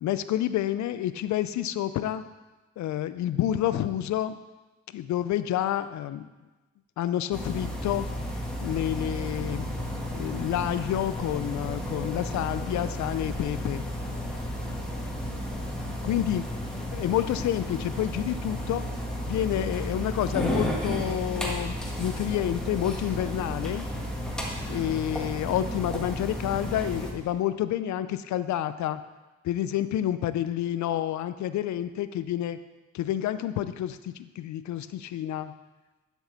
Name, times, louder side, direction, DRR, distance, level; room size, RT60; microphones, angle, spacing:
voice 1, 0.0-2.2 2.8-4.4 4.9-6.3 7.0-8.1 8.6-9.7 10.1-13.9 16.0-16.5 16.9-18.9 19.2-23.9 24.7-29.0 29.4-32.6 32.9-35.5, left 12 dB, 70° left, 13 dB, 0.5 m, -29 dB
sound 1, 7.3-27.1, equal, ahead, 1.7 m, -33 dB
10.5 x 6.4 x 4.0 m, 1.1 s
cardioid pair, 90°, 30 cm